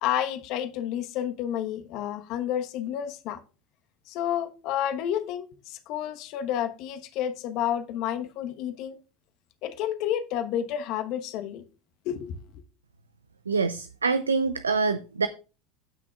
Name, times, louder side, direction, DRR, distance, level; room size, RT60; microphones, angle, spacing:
voice 1, 0.0-3.4 4.1-9.0 9.6-11.6 12.0-12.6, left 10 dB, 55° left, 1.1 m, -30 dB
voice 2, 13.5-15.3, right 4 dB, 85° right, 0.4 m, -25 dB
16.0 x 6.1 x 2.4 m
figure-of-eight pair, 75°, 0 cm